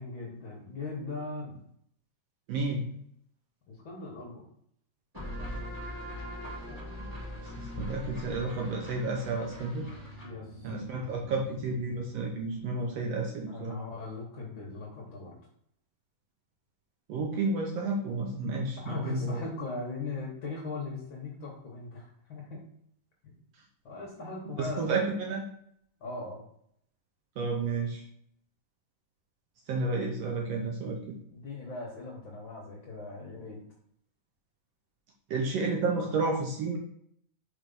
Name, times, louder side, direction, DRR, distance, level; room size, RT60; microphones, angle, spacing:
voice 1, 0.0-1.6 3.7-4.4 10.2-10.8 13.5-15.4 18.8-22.6 23.2-23.3 23.8-24.9 26.0-26.4 31.3-33.6, left 3 dB, 65° left, -2 dB, 1.2 m, -39 dB
voice 2, 2.5-2.9 7.0-7.1 7.4-9.9 10.6-13.8 17.1-19.4 24.6-25.4 27.4-28.0 29.7-31.1 35.3-36.8, right 3 dB, 75° right, 0 dB, 1.5 m, -31 dB
sound 1, 5.1-12.5, left 1 dB, 10° right, 1.9 m, -42 dB
4.5 x 4.5 x 5.3 m, 0.70 s
omnidirectional pair, 3.8 m